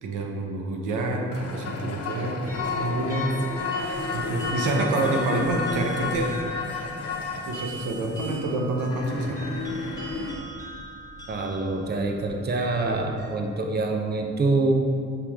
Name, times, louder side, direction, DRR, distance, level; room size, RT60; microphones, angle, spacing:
voice 1, 0.0-3.3 3.7-6.3 7.5-9.4 12.8-13.0, right 2 dB, 85° right, 1 dB, 1.0 m, -28 dB
sound 1, 1.3-10.3, left 4 dB, 50° left, 1.1 m, -32 dB
sound 2, 2.5-13.3, right 2 dB, 10° left, 1.5 m, -42 dB
voice 2, 11.3-14.7, right 3 dB, 35° right, 2 dB, 0.8 m, -25 dB
8.2 x 5.3 x 3.6 m, 2.3 s
cardioid pair, 90°, 30 cm